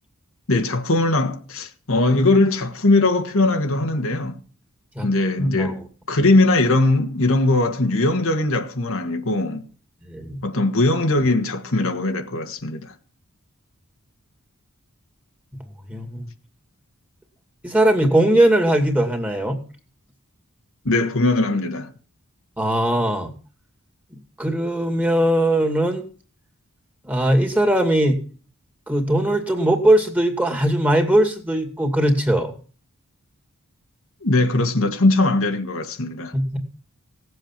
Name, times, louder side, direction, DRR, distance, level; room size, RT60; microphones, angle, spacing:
voice 1, 0.5-4.4 5.0-9.6 10.4-12.9 20.9-21.9 34.2-36.3, left 2 dB, 65° left, 1.7 m, -20 dB
voice 2, 5.4-5.8 10.1-10.4 15.9-16.3 17.6-19.6 22.6-23.3 24.4-26.1 27.0-28.2 28.9-32.5 36.3-36.6, right 1 dB, 5° right, 2.4 m, -19 dB
17.5 x 7.9 x 7.5 m
head